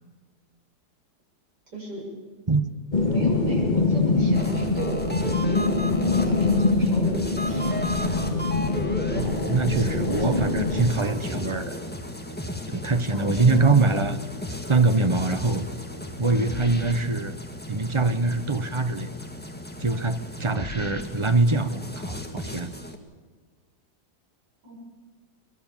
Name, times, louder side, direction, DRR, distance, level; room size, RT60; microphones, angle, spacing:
voice 1, 1.7-2.1 3.0-7.7 9.1-11.8 13.1-13.7 24.6-24.8, right 1 dB, 80° right, -2 dB, 7.4 m, -35 dB
sound 1, 2.9-10.8, left 3 dB, 25° left, 2.0 m, -24 dB
sound 2, 4.3-23.0, left 1 dB, 5° left, 1.5 m, -35 dB
voice 2, 9.2-11.7 12.7-14.2 14.7-15.7 16.2-17.4 17.7-19.1 19.8-22.7, right 3 dB, 25° right, 10 dB, 0.7 m, -23 dB
22.5 x 21.5 x 7.3 m, 1.4 s
omnidirectional pair, 1.8 m